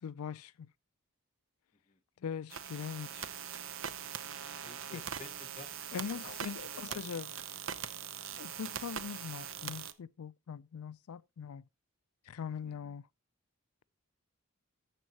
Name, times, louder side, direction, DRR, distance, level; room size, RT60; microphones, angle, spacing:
voice 1, 0.0-0.7 2.2-3.3 4.9-5.0 5.9-7.6 8.4-11.6 12.3-13.1, left 7 dB, 85° left, 0.4 m, -42 dB
sound 1, 2.5-9.9, right 8 dB, 60° right, 0.7 m, -42 dB
voice 2, 4.6-6.4 6.7-7.0 12.6-12.8, left 3 dB, 30° left, 0.8 m, -52 dB
12.5 x 7.4 x 2.9 m
head